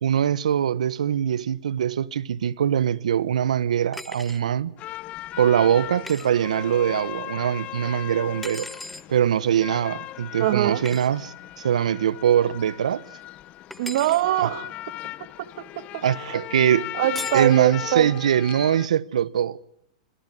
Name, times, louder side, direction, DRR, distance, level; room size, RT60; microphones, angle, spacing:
voice 1, 0.0-4.7 5.4-8.7 9.1-13.0 14.4-14.5 16.0-16.9 17.3-19.7, right 9 dB, 85° right, 1.0 m, -22 dB
sound 1, 3.9-4.4 6.0-6.3 8.4-9.1 10.8-11.1 13.7-14.2 17.2-17.5, left 1 dB, 5° left, 0.9 m, -37 dB
sound 2, 4.8-18.9, left 15 dB, 35° left, 1.0 m, -38 dB
voice 2, 10.4-10.8 13.8-14.7 15.6-16.3 17.0-18.1, right 14 dB, 65° right, 2.1 m, -23 dB
26.0 x 18.0 x 9.9 m
hypercardioid pair, 125°, 4 cm